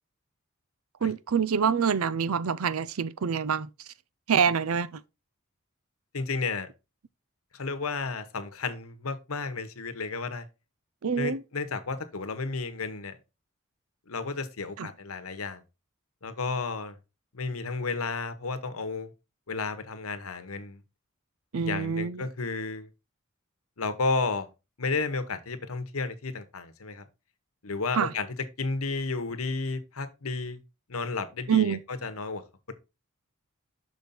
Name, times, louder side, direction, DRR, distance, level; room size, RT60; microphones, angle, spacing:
voice 1, 1.0-3.7 4.3-5.0 11.0-11.4 14.8-14.9 21.5-22.3 28.0-28.1 31.5-31.8, right 7 dB, 90° right, 0.5 m, -26 dB
voice 2, 6.1-6.7 7.5-10.5 11.2-13.2 14.1-15.6 16.2-17.0 17.3-19.1 19.5-20.8 21.5-22.9 23.8-24.5 24.8-27.0 27.6-28.3 28.6-30.6 30.9-32.4 32.7-32.8, left 4 dB, 90° left, 1.1 m, -32 dB
6.4 x 5.2 x 4.2 m
head